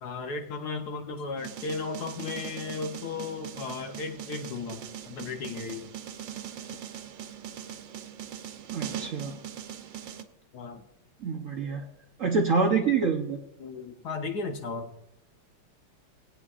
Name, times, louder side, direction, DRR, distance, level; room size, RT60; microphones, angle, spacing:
voice 1, 0.0-5.9 10.5-10.9 13.6-14.9, left 4 dB, 60° left, 5 dB, 1.3 m, -35 dB
sound 1, 1.4-10.2, right 10 dB, 75° right, 1.4 m, -40 dB
voice 2, 8.7-9.4 11.2-11.8 12.2-13.4, right 4 dB, 60° right, 2 dB, 0.9 m, -26 dB
19.5 x 9.0 x 2.4 m, 0.88 s
omnidirectional pair, 2.1 m